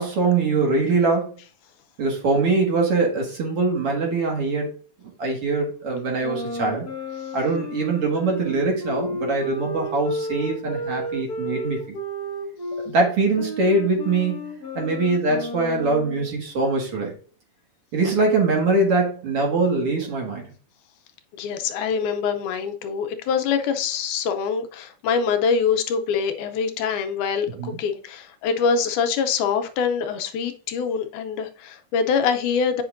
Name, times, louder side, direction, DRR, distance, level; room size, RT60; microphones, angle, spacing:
voice 1, 0.0-1.3 2.0-4.7 5.2-6.9 7.3-12.0 12.9-14.5 14.8-17.1 17.9-20.4 27.6-27.8, right 3 dB, 50° right, 0 dB, 2.4 m, -22 dB
sound 1, 6.2-12.9 13.4-16.3, equal, 65° left, 0.9 m, -32 dB
voice 2, 21.3-32.8, left 6 dB, 85° left, 7 dB, 2.1 m, -24 dB
8.6 x 5.7 x 2.5 m, 0.41 s
omnidirectional pair, 3.6 m